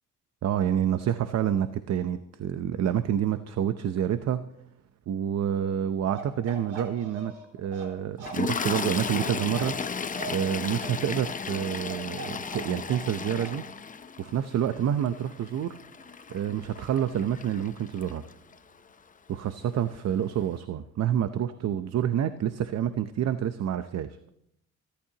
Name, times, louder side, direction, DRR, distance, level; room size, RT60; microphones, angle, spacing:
voice 1, 0.4-4.5 5.1-7.3 7.6-9.9 10.3-13.6 14.2-15.8 16.3-18.3 19.3-24.2, right 9 dB, 60° right, 11 dB, 0.7 m, -28 dB
Bark, 6.1-13.1 13.4-13.6, right 3 dB, 85° right, 3.8 m, -41 dB
Toilet flush, 8.2-18.5 19.5-19.7 19.9-20.1, left 5 dB, 25° left, 0.7 m, -35 dB
29.0 x 12.0 x 2.9 m, 0.75 s
cardioid pair, 90°, 30 cm